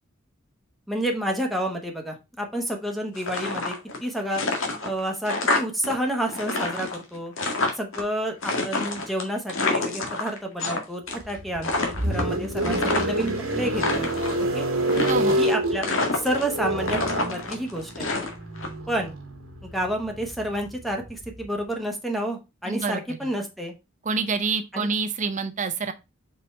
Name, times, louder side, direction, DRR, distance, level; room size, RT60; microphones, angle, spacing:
voice 1, 0.9-3.7 4.0-4.4 4.8-7.3 7.8-14.1 14.5-14.7 15.4-15.9 16.1-18.1 18.9-19.1 19.6-23.7 24.7-24.9, right 1 dB, ahead, 1.0 m, -29 dB
sound 1, 3.1-4.0 4.3-5.9 6.2-8.0 8.4-10.8 11.1-11.4 11.6-13.3 13.7-14.4 14.9-15.5 15.8-16.6 16.8-18.7, left 3 dB, 75° left, 1.7 m, -27 dB
sound 2, 11.2-21.4, right 1 dB, 90° right, 1.6 m, -28 dB
voice 2, 15.1-15.4 22.7-23.3 24.0-25.9, right 4 dB, 35° right, 0.7 m, -27 dB
5.2 x 4.5 x 4.3 m
head